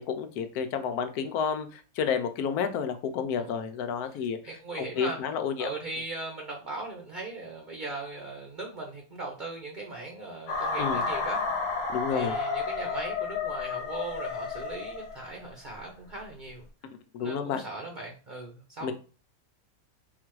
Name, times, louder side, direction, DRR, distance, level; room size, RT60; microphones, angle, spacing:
voice 1, 0.0-4.4 5.0-5.7 10.8-11.0 11.9-12.4 17.1-17.6 18.8-18.9, left 6 dB, 85° left, 8 dB, 1.1 m, -30 dB
voice 2, 4.4-5.2 5.6-11.4 12.1-16.7 17.2-18.9, right 2 dB, 40° right, 0 dB, 0.8 m, -39 dB
sound 1, 10.5-15.5, left 4 dB, 65° left, 1.2 m, -31 dB
4.0 x 2.4 x 4.5 m, 0.36 s
omnidirectional pair, 1.6 m